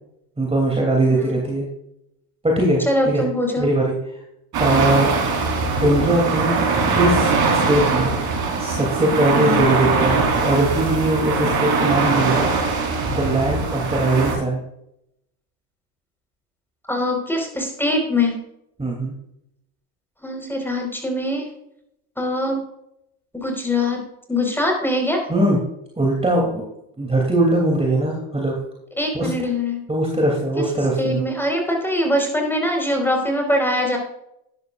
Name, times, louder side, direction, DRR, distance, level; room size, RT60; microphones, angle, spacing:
voice 1, 0.4-1.7 2.4-3.2 3.6-3.9 4.6-5.1 5.8-6.5 6.9-7.3 7.6-8.2 8.6-12.5 13.1-14.6 18.8-19.1 25.3-25.6 26.0-26.6 27.0-28.5 29.1-29.3 29.9-31.2, right 1 dB, 15° right, -1 dB, 3.0 m, -20 dB
voice 2, 1.0-1.3 2.9-3.7 9.4-9.6 16.9-18.4 20.2-21.5 22.2-22.6 23.3-24.0 24.3-25.2 29.0-29.8 30.6-30.7 31.0-34.0, left 1 dB, 5° left, 2 dB, 4.6 m, -22 dB
sound 1, 4.5-14.4, right 4 dB, 50° right, 3.9 m, -21 dB
12.5 x 11.0 x 2.5 m, 0.80 s
supercardioid pair, 90°, 46 cm